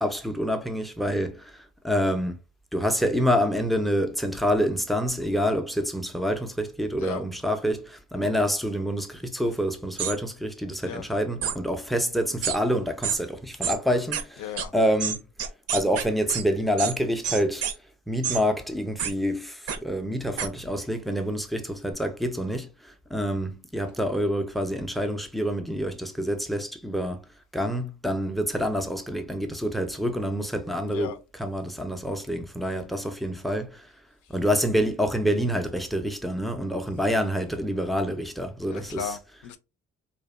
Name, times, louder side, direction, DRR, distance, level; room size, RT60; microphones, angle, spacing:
voice 1, 0.0-2.4 2.7-14.4 14.7-15.3 15.7-17.7 18.1-27.2 27.5-31.1 31.4-33.9 34.3-39.1, equal, ahead, 0.3 m, -27 dB
sound 1, 10.0-10.1 11.4-11.6 12.4-12.6 13.0-13.2 13.6-13.8 14.1-14.2 14.6-14.7 15.0-16.4 16.8-16.9 17.2-17.7 18.2-18.4 19.0-19.1 19.7-19.8 20.4-20.5, right 8 dB, 55° right, 0.5 m, -28 dB
voice 2, 14.4-14.7 30.9-31.2 38.7-39.6, left 8 dB, 80° left, 0.5 m, -35 dB
2.7 x 2.2 x 2.3 m
cardioid pair, 90°, 30 cm